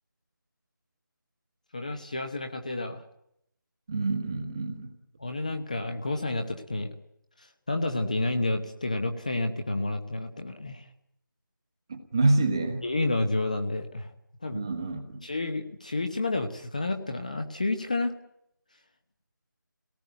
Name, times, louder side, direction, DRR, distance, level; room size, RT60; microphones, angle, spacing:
voice 1, 1.7-3.0 5.2-6.9 7.4-10.9 12.8-14.1 14.4-14.6 15.2-18.2, left 2 dB, 20° left, 6 dB, 1.0 m, -30 dB
voice 2, 3.9-4.9 11.9-12.8 14.5-15.2, right 2 dB, 15° right, 5 dB, 1.4 m, -27 dB
25.0 x 18.0 x 9.2 m, 0.77 s
figure-of-eight pair, 180°, 11 cm